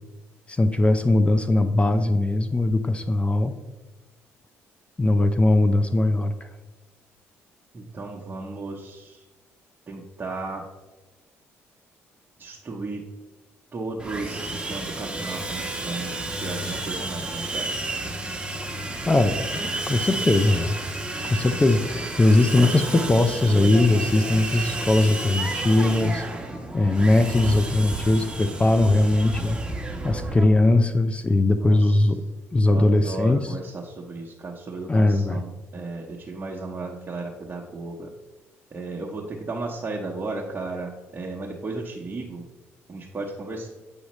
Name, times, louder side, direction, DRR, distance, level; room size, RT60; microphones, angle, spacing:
voice 1, 0.5-3.5 5.0-6.5 19.1-20.8 21.3-26.2 26.7-29.6 30.0-32.2 32.5-33.5 34.9-35.4, left 2 dB, 20° left, 10 dB, 0.5 m, -20 dB
voice 2, 7.7-9.2 9.9-10.6 12.4-13.0 13.7-17.7 21.2-21.6 30.4-30.5 31.6-32.0 32.7-38.1 38.7-42.4 42.9-43.7, right 3 dB, 35° right, -2 dB, 1.0 m, -35 dB
Sawing, 14.0-30.4, right 2 dB, 15° right, 1.1 m, -31 dB
8.3 x 4.9 x 3.1 m, 1.1 s
supercardioid pair, 70°, 6 cm